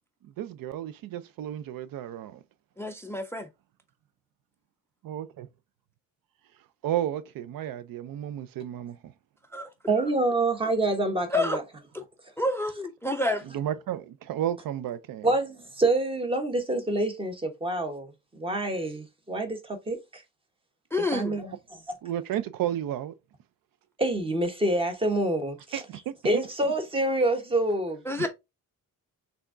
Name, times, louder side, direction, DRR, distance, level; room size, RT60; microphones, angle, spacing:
voice 1, 0.2-2.4 5.0-5.5 6.8-9.1 13.5-15.3 22.0-23.1 25.7-26.4 28.2-28.3, right 11 dB, 90° right, 0.6 m, -32 dB
voice 2, 2.8-3.5 9.5-9.7 11.3-11.6 11.9-12.0 12.4-13.4 20.9-21.4 28.1-28.3, left 2 dB, 10° left, 0.3 m, -28 dB
voice 3, 9.9-11.6 15.2-20.2 21.1-21.5 21.9-22.0 24.0-25.8 26.2-28.3, right 2 dB, 15° right, 1.0 m, -27 dB
5.9 x 3.6 x 2.5 m
wide cardioid pair, 180°, 33 cm